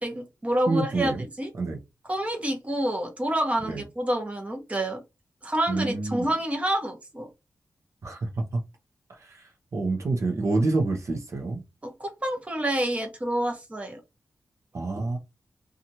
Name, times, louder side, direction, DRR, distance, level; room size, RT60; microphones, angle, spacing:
voice 1, 0.0-1.5 2.1-5.0 5.4-7.3 11.8-14.0, right 1 dB, 20° right, 0.9 m, -28 dB
voice 2, 0.7-1.2 1.6-1.8 3.7-3.8 5.7-6.3 8.0-8.6 9.1-11.6 14.7-15.2, right 3 dB, 50° right, 0.7 m, -27 dB
2.9 x 2.4 x 2.7 m
wide cardioid pair, 140°, 6 cm